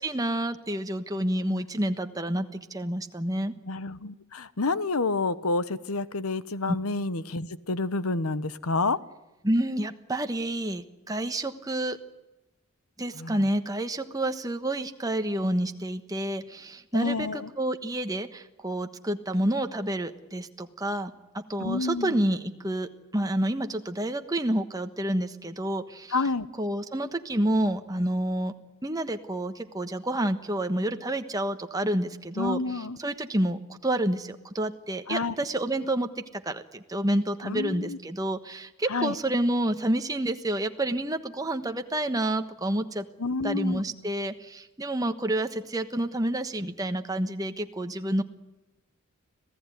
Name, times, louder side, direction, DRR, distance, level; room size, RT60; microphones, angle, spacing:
voice 1, 0.0-3.5 6.7-6.8 9.4-12.0 13.0-26.1 26.6-28.5 28.8-43.0 43.4-48.2, right 1 dB, 15° right, 7 dB, 1.3 m, -29 dB
voice 2, 3.7-9.0 13.1-13.4 16.9-17.5 21.6-22.2 26.1-26.5 32.4-33.0 35.1-35.3 37.4-38.0 38.9-39.1 43.2-43.8, left 3 dB, 80° left, 15 dB, 1.1 m, -29 dB
26.5 x 16.5 x 9.2 m, 1.0 s
head